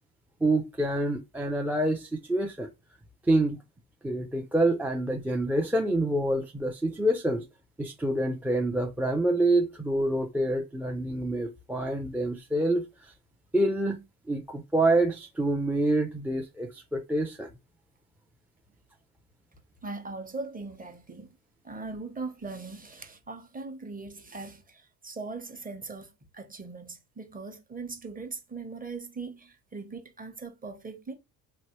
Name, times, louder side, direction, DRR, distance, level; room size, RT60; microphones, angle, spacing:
voice 1, 0.4-2.7 3.3-3.6 4.0-7.5 7.8-12.8 13.5-17.5, right 1 dB, 5° right, 0.4 m, -27 dB
voice 2, 19.5-21.3 21.6-31.1, right 3 dB, 20° right, 0.9 m, -40 dB
3.1 x 2.1 x 3.0 m
supercardioid pair, 70°, 42 cm